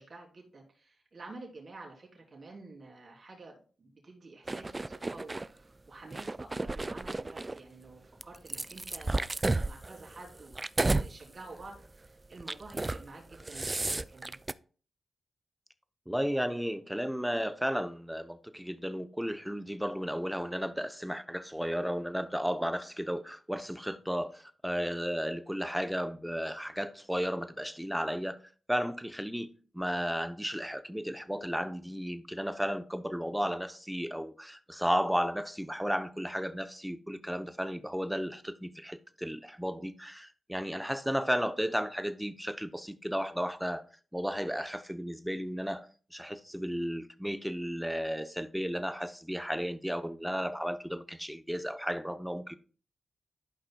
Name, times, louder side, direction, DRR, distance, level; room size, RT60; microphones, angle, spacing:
voice 1, 0.0-10.6 11.0-14.4, right 3 dB, 50° right, 3.2 m, -50 dB
sound 1, 4.5-5.5 6.1-7.6 8.2-11.1 11.5-11.8 12.4-13.0 13.3-14.5, right 2 dB, 25° right, 0.3 m, -32 dB
voice 2, 16.1-28.4 28.7-43.8 44.1-45.9 46.1-52.6, equal, 5° right, 0.7 m, -34 dB
12.5 x 5.5 x 2.3 m
cardioid pair, 60°, 0 cm